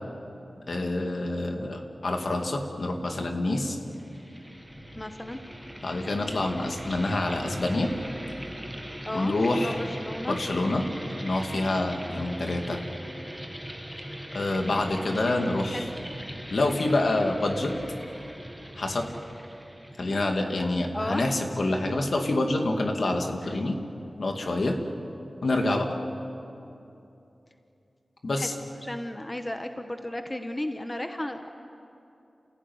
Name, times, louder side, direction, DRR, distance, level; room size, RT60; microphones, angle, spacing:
voice 1, 0.7-3.8 5.8-7.9 9.1-9.8 10.3-10.9 11.2-12.9 14.3-15.9 16.5-17.8 18.8-19.1 20.0-23.8 24.2-24.8 25.4-25.9 28.2-28.5, left 2 dB, 70° left, 3 dB, 2.5 m, -27 dB
sound 1, 3.9-20.6, equal, 5° right, 1.8 m, -40 dB
voice 2, 4.9-5.4 9.0-9.3 9.6-10.4 15.7-15.9 20.9-21.2 23.4-23.5 28.4-28.5 28.8-31.5, left 1 dB, 20° left, 6 dB, 1.2 m, -34 dB
30.0 x 16.0 x 9.5 m, 2.8 s
wide cardioid pair, 95°, 0 cm